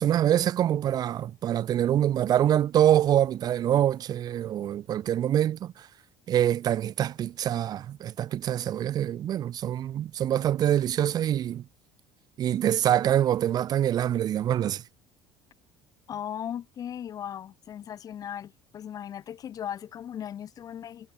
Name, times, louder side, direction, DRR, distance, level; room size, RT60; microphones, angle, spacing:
voice 1, 0.0-5.9 6.3-11.6 12.4-14.8, right 11 dB, 50° right, 3.0 m, -25 dB
voice 2, 16.1-21.1, left 9 dB, 45° left, 4.2 m, -37 dB
cardioid pair, 110°, 9 cm